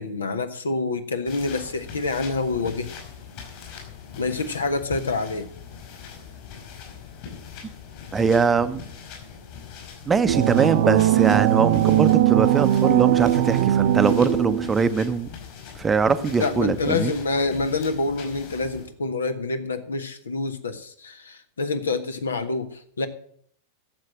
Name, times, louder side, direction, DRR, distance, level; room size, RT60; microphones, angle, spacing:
voice 1, 0.0-2.9 4.2-5.5 16.2-23.1, left 3 dB, 70° left, 9 dB, 1.2 m, -27 dB
sound 1, 1.3-18.9, left 7 dB, 50° left, 5.3 m, -41 dB
voice 2, 8.1-8.8 10.1-15.3 15.8-17.1, right 5 dB, 15° right, 12 dB, 0.7 m, -22 dB
sound 2, 10.3-14.8, right 13 dB, 55° right, 0.5 m, -20 dB
12.0 x 7.5 x 7.4 m, 0.63 s
figure-of-eight pair, 90°, 0 cm